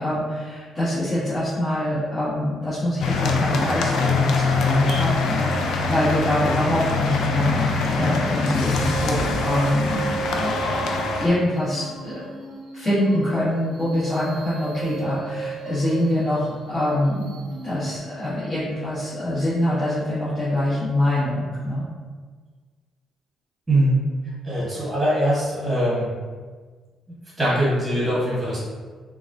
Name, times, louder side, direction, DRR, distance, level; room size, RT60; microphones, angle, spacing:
voice 1, 0.0-12.4 12.7-17.2 17.6-21.8, left 1 dB, 35° left, -15 dB, 1.5 m, -24 dB
sound 1, 3.0-11.3, left 4 dB, 80° left, 0.4 m, -23 dB
sound 2, 8.7-18.0, right 5 dB, 75° right, 0.5 m, -35 dB
voice 2, 23.7-24.0 24.4-26.1 27.4-28.6, right 1 dB, 10° right, -8 dB, 1.3 m, -21 dB
4.0 x 2.4 x 2.7 m, 1.5 s
cardioid pair, 90°, 0 cm